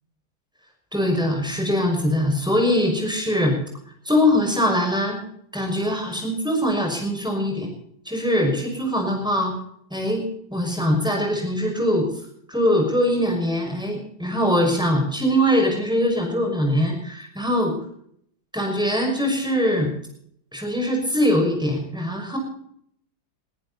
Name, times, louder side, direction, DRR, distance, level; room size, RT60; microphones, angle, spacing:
voice 1, 0.9-3.6 4.0-5.2 5.5-7.7 8.1-9.5 9.9-12.1 12.5-17.7 18.5-19.9 20.5-22.4, equal, ahead, 1 dB, 5.8 m, -22 dB
21.5 x 14.5 x 4.1 m, 0.66 s
omnidirectional pair, 2.1 m